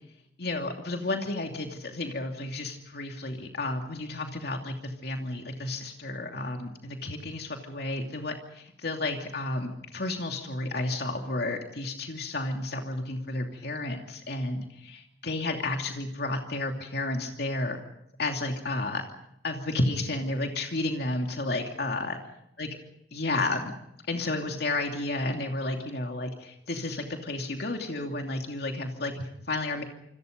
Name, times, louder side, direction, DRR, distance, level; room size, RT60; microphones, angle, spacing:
voice 1, 0.4-17.8 18.2-19.0 19.4-22.2 22.6-22.7 23.1-23.7 24.1-29.8, left 2 dB, 65° left, 3 dB, 2.8 m, -32 dB
27.5 x 27.0 x 5.3 m, 0.77 s
head